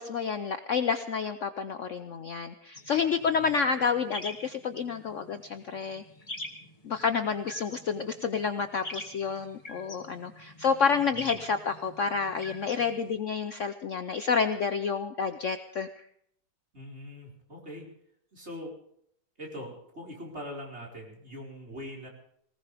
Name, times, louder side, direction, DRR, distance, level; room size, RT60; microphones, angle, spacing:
voice 1, 0.0-6.0 6.8-16.1, left 6 dB, 55° left, 9 dB, 0.9 m, -29 dB
sound 1, 2.7-13.2, left 1 dB, 20° left, 2.1 m, -45 dB
voice 2, 16.7-17.9 18.3-18.7 19.4-22.1, equal, 35° right, -2 dB, 5.0 m, -42 dB
20.0 x 19.5 x 3.5 m, 0.67 s
omnidirectional pair, 1.8 m